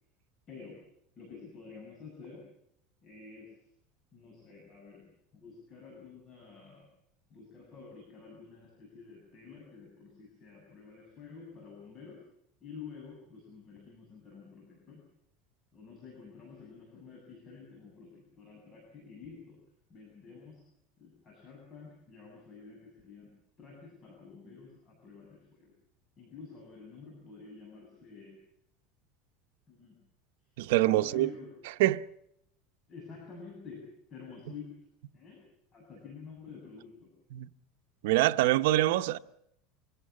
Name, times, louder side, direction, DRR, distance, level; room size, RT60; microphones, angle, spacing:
voice 1, 1.1-2.4 3.0-3.6 4.1-6.9 7.3-12.2 12.6-15.0 15.7-19.6 19.9-20.6 21.0-23.3 23.6-25.7 26.2-28.4 29.7-29.9 31.0-31.5 32.9-33.8 34.1-34.7 35.1-35.4 35.7-37.1, left 5 dB, 30° left, 7.9 m, -49 dB
voice 2, 30.6-31.3 31.8-32.0 37.3-37.5 38.0-39.2, right 16 dB, 80° right, 0.9 m, -25 dB
26.0 x 17.0 x 8.5 m
supercardioid pair, 150°, 0 cm